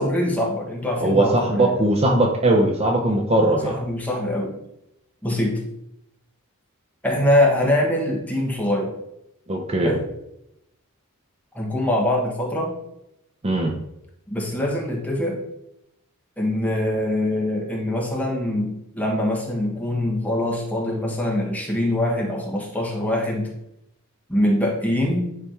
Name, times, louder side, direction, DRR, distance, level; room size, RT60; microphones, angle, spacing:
voice 1, 0.0-1.9 3.6-4.5 5.2-5.6 7.0-8.9 9.8-10.0 11.5-12.7 14.3-15.4 16.4-23.5 24.3-25.3, left 1 dB, 5° left, -2 dB, 1.5 m, -23 dB
voice 2, 1.0-3.8 9.5-9.9 13.4-13.7, right 1 dB, 25° right, 1 dB, 0.7 m, -20 dB
9.8 x 3.4 x 4.5 m, 0.82 s
head